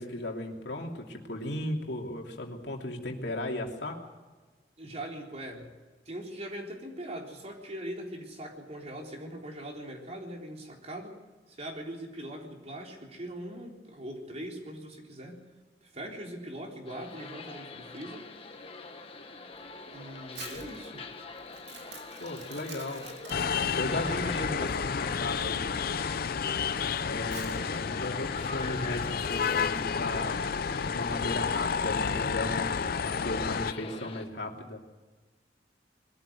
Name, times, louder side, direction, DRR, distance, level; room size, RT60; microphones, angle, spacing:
voice 1, 0.0-4.0 22.2-23.0 23.7-25.7 27.0-34.8, left 1 dB, 75° left, 1 dB, 2.9 m, -36 dB
voice 2, 4.8-5.7 6.1-11.2 11.5-15.4 15.8-18.3 19.9-21.1 24.0-24.4, right 1 dB, 40° right, 1 dB, 3.8 m, -41 dB
sound 1, 16.9-34.3, left 3 dB, 35° left, 1.7 m, -44 dB
Crumpling crinkling, 19.5-30.0, right 5 dB, 75° right, 3.4 m, -51 dB
sound 2, 23.3-33.7, left 6 dB, 60° left, 0.5 m, -31 dB
22.0 x 13.0 x 9.4 m, 1.3 s
head